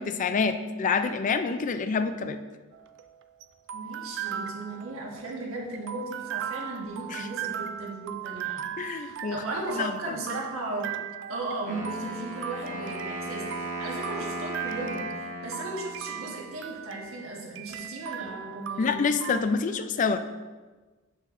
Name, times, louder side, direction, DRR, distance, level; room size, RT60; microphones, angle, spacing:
voice 1, 0.0-2.4 7.1-7.3 8.8-9.4 9.7-10.2 18.8-20.2, left 5 dB, 40° left, 9 dB, 0.3 m, -27 dB
sound 1, 2.7-19.4, right 9 dB, 60° right, 0.4 m, -38 dB
voice 2, 3.7-10.9 11.3-19.0, right 2 dB, 85° right, -2 dB, 1.4 m, -36 dB
Wind instrument woodwind instrument, 11.6-16.6, right 1 dB, 40° right, 1.1 m, -37 dB
7.6 x 6.3 x 2.6 m, 1.3 s
head